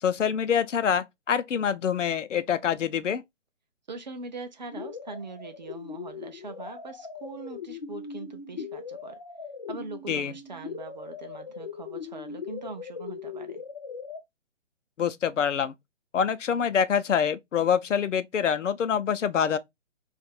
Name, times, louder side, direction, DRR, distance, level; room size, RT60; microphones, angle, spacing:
voice 1, 0.0-3.2 10.1-10.3 15.0-15.7 16.1-19.6, left 7 dB, 80° left, 0.7 m, -25 dB
voice 2, 3.9-9.2 9.7-13.6, right 3 dB, 40° right, 0.5 m, -42 dB
sound 1, 4.7-14.2, left 5 dB, 30° left, 0.5 m, -40 dB
2.8 x 2.5 x 4.1 m
hypercardioid pair, 165°, 36 cm